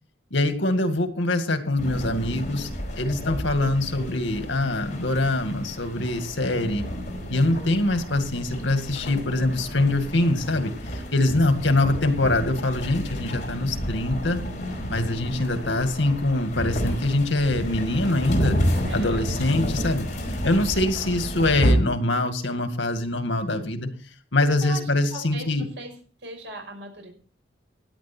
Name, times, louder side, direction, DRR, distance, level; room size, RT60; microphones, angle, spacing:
voice 1, 0.3-6.9 7.3-14.4 14.9-18.6 18.9-20.1 20.4-23.9 24.3-25.6, left 2 dB, 85° left, 7 dB, 2.1 m, -24 dB
sound 1, 1.8-21.7, equal, 45° left, 4.8 m, -30 dB
voice 2, 11.3-11.7 18.9-19.6 24.6-24.8 25.1-25.9 26.2-27.1, right 3 dB, 80° right, 2 dB, 5.6 m, -40 dB
16.5 x 10.5 x 4.4 m, 0.41 s
head